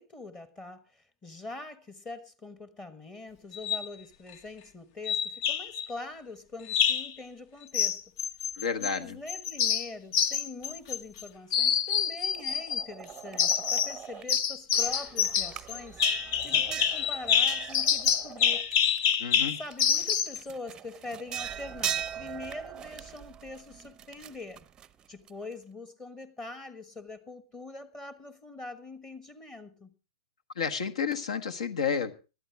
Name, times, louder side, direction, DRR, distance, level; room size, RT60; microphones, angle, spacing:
voice 1, 0.0-8.0 8.8-18.7 19.6-24.6 25.1-29.9, left 2 dB, 20° left, 12 dB, 1.3 m, -43 dB
sound 1, 3.5-3.9 5.1-5.9 6.7-7.1 7.7-9.0 9.3-11.2 11.5-12.9 13.4-14.0 14.3-20.4, left 8 dB, 45° left, 0.9 m, -27 dB
voice 2, 8.6-9.2 19.2-19.6 30.5-32.1, left 6 dB, 65° left, 10 dB, 1.5 m, -31 dB
sound 2, 12.3-14.4 14.7-19.1 19.6-25.5, right 10 dB, 20° right, 0.6 m, -40 dB
19.5 x 12.5 x 3.4 m, 0.32 s
figure-of-eight pair, 110°, 4 cm